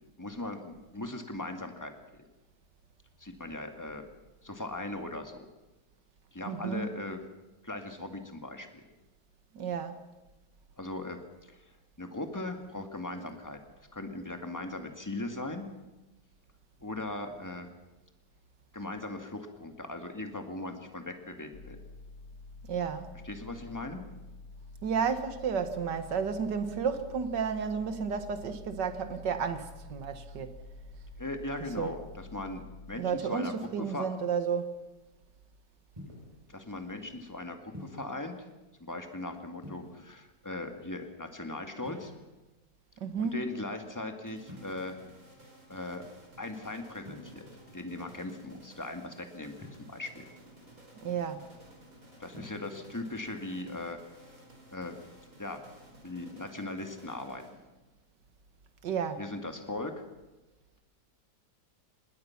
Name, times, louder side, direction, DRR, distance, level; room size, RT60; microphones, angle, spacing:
voice 1, 0.2-2.2 3.2-4.1 4.4-5.5 6.3-7.2 7.6-8.8 10.8-11.6 12.0-13.6 13.9-15.7 16.8-17.7 18.7-21.8 23.2-24.0 31.2-32.6 32.9-34.1 36.5-38.4 38.8-42.1 43.2-44.9 45.7-46.0 46.4-47.5 47.7-50.3 52.2-54.0 54.7-55.0 55.4-55.6 56.0-57.4 59.2-59.9, left 2 dB, 10° left, 2.0 m, -39 dB
voice 2, 6.4-6.9 9.5-10.0 22.7-23.1 24.8-30.6 31.8-31.9 33.0-34.7 43.0-43.4 51.0-51.4 58.8-59.2, right 6 dB, 80° right, 2.1 m, -32 dB
sound 1, 21.5-33.0, left 3 dB, 65° left, 2.0 m, -49 dB
sound 2, 36.0-36.4 37.7-38.2 39.6-40.2 41.8-42.6 44.4-45.0 47.0-47.3 49.6-50.1 52.3-52.7, left 1 dB, 15° right, 7.4 m, -47 dB
sound 3, 44.3-57.9, right 1 dB, 50° right, 5.5 m, -55 dB
26.0 x 20.0 x 6.0 m
omnidirectional pair, 1.8 m